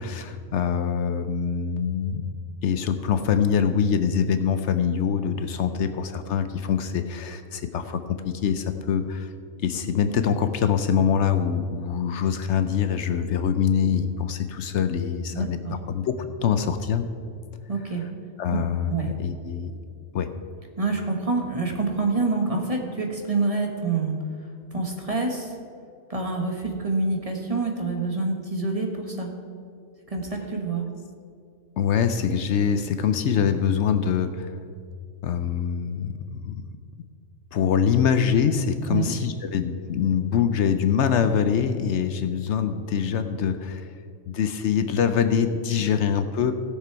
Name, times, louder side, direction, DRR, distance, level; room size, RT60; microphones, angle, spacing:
voice 1, 0.0-2.2 2.6-9.3 9.6-17.1 18.0-18.1 18.4-18.9 19.2-19.7 20.1-20.3 31.8-34.6 35.2-36.6 37.5-43.9 44.3-46.5, left 7 dB, 70° left, 9 dB, 0.9 m, -24 dB
voice 2, 15.3-15.8 17.7-18.0 18.5-19.1 20.8-24.2 24.7-25.5 26.1-29.3 30.1-30.8 38.9-39.1, right 3 dB, 30° right, 2 dB, 1.3 m, -27 dB
16.5 x 6.8 x 4.6 m, 2.4 s
omnidirectional pair, 1.3 m